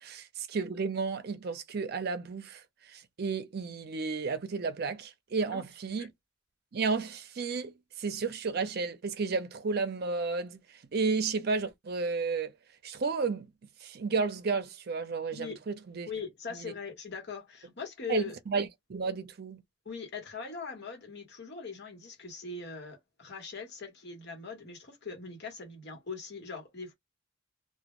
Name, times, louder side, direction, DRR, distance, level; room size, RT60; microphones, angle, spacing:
voice 1, 0.0-6.1 6.7-10.6 10.9-12.5 12.8-13.5 13.8-16.1 16.6-16.7 18.1-19.6, right 4 dB, 55° right, 0.5 m, -32 dB
voice 2, 16.1-18.3 19.8-26.9, left 5 dB, 60° left, 1.0 m, -41 dB
2.1 x 2.1 x 2.9 m
head